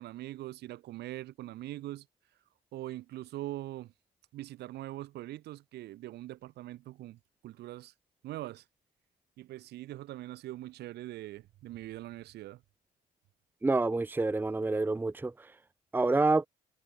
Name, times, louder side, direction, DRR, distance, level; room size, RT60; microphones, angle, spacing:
voice 1, 0.0-2.1 2.7-3.9 4.3-7.9 8.2-8.6 9.4-12.6, right 15 dB, 75° right, 6.2 m, -42 dB
voice 2, 13.6-15.3 15.9-16.5, right 3 dB, 10° right, 0.9 m, -27 dB
cardioid pair, 110°, 17 cm